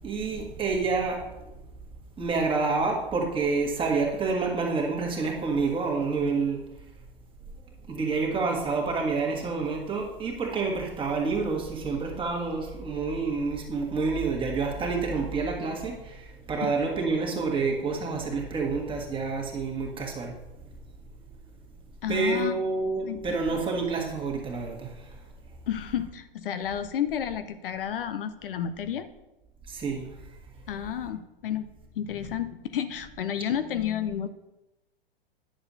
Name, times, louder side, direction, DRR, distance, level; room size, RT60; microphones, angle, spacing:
voice 1, 0.0-1.5 2.2-6.6 7.9-20.3 22.1-25.2 29.7-30.1, right 4 dB, 15° right, 0 dB, 1.7 m, -28 dB
voice 2, 22.0-22.6 23.0-23.4 25.7-29.1 30.7-31.7 32.0-34.3, left 9 dB, 65° left, 10 dB, 0.6 m, -31 dB
10.5 x 6.7 x 2.8 m, 0.97 s
figure-of-eight pair, 100°, 30 cm